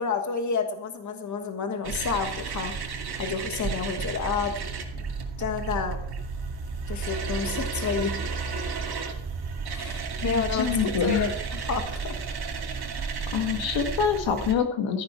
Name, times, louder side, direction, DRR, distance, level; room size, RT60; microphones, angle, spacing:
voice 1, 0.0-4.6 5.0-5.1 5.4-6.0 6.9-8.2 9.7-12.2, left 5 dB, 40° left, 6 dB, 1.4 m, -30 dB
sound 1, 1.8-14.5, right 5 dB, 60° right, 2.4 m, -32 dB
voice 2, 10.2-11.3 13.3-15.0, left 7 dB, 80° left, 6 dB, 1.9 m, -26 dB
14.0 x 10.0 x 4.5 m, 0.73 s
wide cardioid pair, 150°, 45 cm